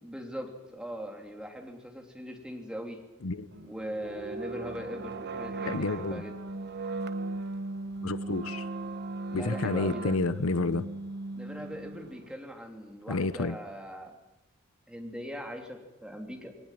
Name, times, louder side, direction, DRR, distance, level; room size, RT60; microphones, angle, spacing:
voice 1, 0.0-3.1 3.6-6.4 9.3-10.2 11.3-14.1 14.9-16.5, equal, 5° right, 2 dB, 3.1 m, -40 dB
sound 1, 3.5-12.3, right 2 dB, 50° right, 1.2 m, -37 dB
voice 2, 5.7-6.2 8.0-8.7 9.3-10.8 13.1-13.6, left 3 dB, 75° left, 15 dB, 0.8 m, -29 dB
21.0 x 19.0 x 9.2 m, 0.97 s
head